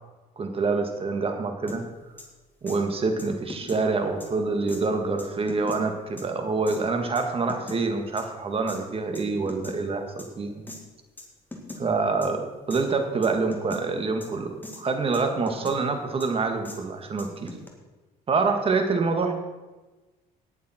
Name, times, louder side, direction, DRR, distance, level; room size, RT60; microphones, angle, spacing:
voice 1, 0.4-1.8 2.6-10.6 11.8-17.5 18.3-19.3, right 4 dB, 35° right, 5 dB, 1.9 m, -26 dB
sound 1, 1.7-1.8 2.2-2.3 2.7-2.8 3.2-3.8 4.2-4.3 4.7-4.8 5.2-5.8 6.2-6.3 6.7-6.8 7.2-7.8 8.2-8.3 8.7-8.8 9.1-9.8 10.2-10.3 10.7-10.8 11.2-11.3 11.5-11.8 12.2-12.3 12.7-12.8 13.2-13.8 14.2-14.3 14.6-14.8 15.1-15.8 16.2-16.3 16.6-16.8 17.2-17.7, left 1 dB, 10° left, 2.2 m, -39 dB
18.5 x 7.3 x 4.4 m, 1.2 s
cardioid pair, 110°, 17 cm